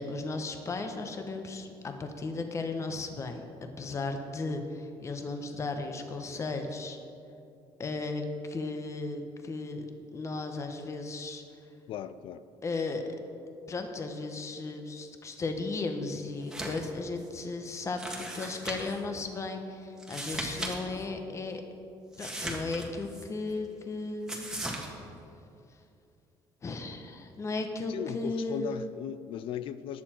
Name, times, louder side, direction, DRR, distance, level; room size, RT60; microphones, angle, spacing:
voice 1, 0.0-3.4 3.8-7.0 7.8-9.9 10.1-11.4 12.6-13.1 13.7-21.6 22.2-24.6 25.0-25.1 26.6-28.7, left 3 dB, 30° left, 5 dB, 1.2 m, -35 dB
voice 2, 11.9-12.4 27.9-30.0, left 9 dB, 65° left, 14 dB, 0.5 m, -37 dB
sound 1, 16.4-16.9 17.2-17.3 18.0-19.0 20.0-20.8 21.0-21.1 22.1-23.2 24.3-24.9, right 1 dB, 5° right, 1.8 m, -37 dB
19.5 x 7.0 x 4.5 m, 2.6 s
cardioid pair, 115°, 10 cm